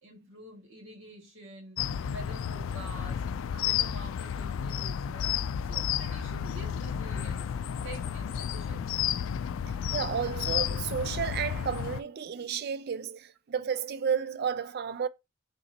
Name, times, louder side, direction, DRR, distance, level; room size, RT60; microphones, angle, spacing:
voice 1, 0.0-1.8 2.1-3.2 3.6-5.3 5.6-7.5 7.8-9.1, right 1 dB, 85° right, 2.1 m, -47 dB
sound 1, 1.8-12.0, left 9 dB, 90° left, 0.3 m, -32 dB
voice 2, 9.9-15.1, right 7 dB, 50° right, 0.4 m, -32 dB
5.7 x 3.1 x 2.8 m
head